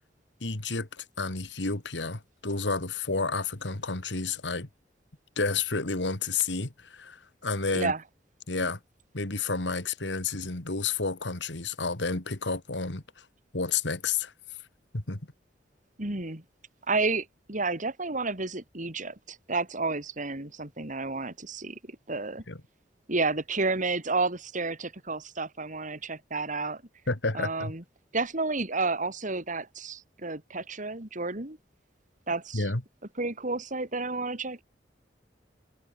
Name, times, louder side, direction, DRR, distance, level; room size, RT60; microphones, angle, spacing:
voice 1, 0.4-4.7 5.4-7.9 8.5-8.8 9.1-13.3 13.5-14.3 14.9-15.2 22.5-22.6 27.1-27.7 32.5-32.8, left 4 dB, 85° left, 2.4 m, -30 dB
voice 2, 16.0-16.4 16.9-22.4 23.1-26.8 27.3-27.8 28.1-31.6 32.3-32.7 33.2-34.6, right 3 dB, 45° right, 3.4 m, -31 dB
head